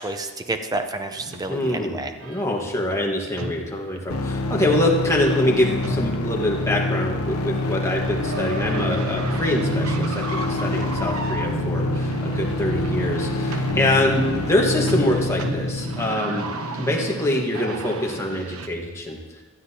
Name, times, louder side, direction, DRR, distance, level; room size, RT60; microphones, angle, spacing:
voice 1, 0.0-2.1, right 2 dB, 15° right, 7 dB, 0.6 m, -29 dB
sound 1, 1.2-18.7, right 2 dB, 75° right, 0.9 m, -33 dB
voice 2, 1.5-16.5 16.8-19.2, left 1 dB, 15° left, -1 dB, 1.4 m, -24 dB
sound 2, 4.1-16.1, left 2 dB, 85° left, 0.8 m, -26 dB
18.0 x 12.0 x 2.9 m, 1.4 s
head